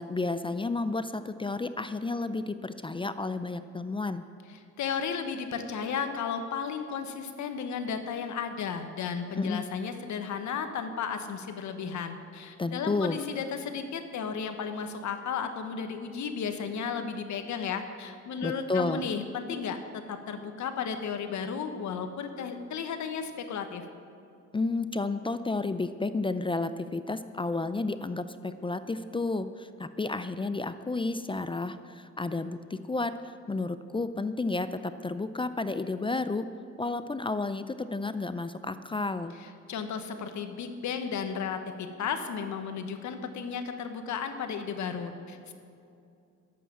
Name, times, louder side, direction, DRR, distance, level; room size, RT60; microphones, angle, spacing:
voice 1, 0.0-4.2 9.4-9.7 12.6-13.2 18.4-19.1 24.5-36.5 36.8-39.3, left 3 dB, 15° left, 11 dB, 0.5 m, -31 dB
voice 2, 4.8-23.8 39.4-45.5, left 6 dB, 70° left, 7 dB, 1.3 m, -34 dB
12.0 x 8.4 x 8.5 m, 2.6 s
cardioid pair, 90°, 30 cm